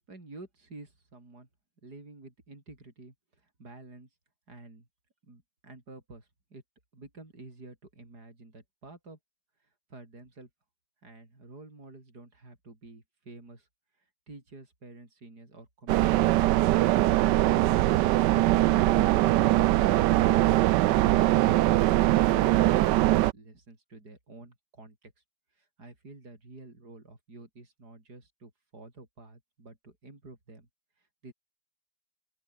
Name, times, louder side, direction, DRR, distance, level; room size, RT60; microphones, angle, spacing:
voice 1, 0.0-1.5 1.8-4.1 4.5-4.9 5.2-6.6 6.9-9.2 9.6-10.5 11.0-13.7 14.0-18.2 22.3-25.1 25.5-30.7 31.0-31.3, right 2 dB, 50° right, 6.5 m, -50 dB
sound 1, 15.9-23.3, right 16 dB, 70° right, 1.1 m, -22 dB
open air
omnidirectional pair, 2.1 m